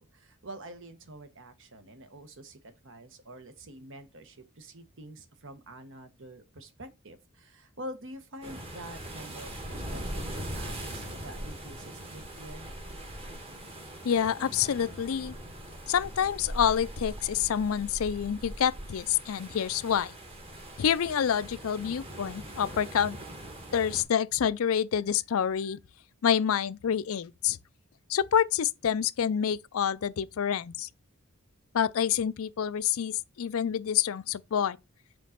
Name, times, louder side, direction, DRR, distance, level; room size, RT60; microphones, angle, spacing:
voice 1, 0.0-12.7, right 1 dB, 60° right, 1.1 m, -46 dB
sound 1, 8.4-24.0, right 1 dB, 25° right, 1.3 m, -41 dB
voice 2, 14.0-15.3 15.9-20.1 20.8-23.2 23.7-25.8 26.2-27.6 28.1-30.9 31.7-34.8, left 8 dB, 65° left, 0.4 m, -27 dB
5.2 x 3.8 x 5.7 m
head